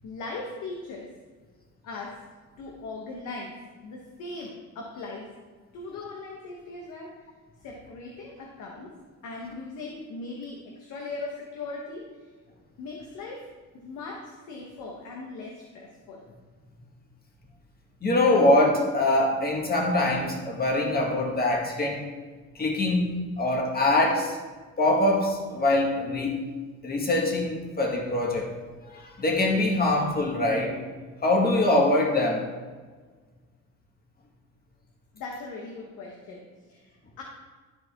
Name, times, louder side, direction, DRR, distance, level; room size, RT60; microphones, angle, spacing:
voice 1, 0.0-1.2 1.8-2.2 2.6-3.6 3.8-5.3 5.7-7.3 7.6-8.9 9.2-12.3 12.8-13.5 13.7-16.3 35.1-37.2, left 3 dB, 85° left, -1 dB, 1.2 m, -39 dB
voice 2, 18.0-22.1 22.6-24.4 24.8-26.5 26.8-28.5 28.9-30.8 31.2-32.5, left 2 dB, 30° left, 0 dB, 1.8 m, -23 dB
12.5 x 4.5 x 3.7 m, 1.4 s
cardioid pair, 90°, 30 cm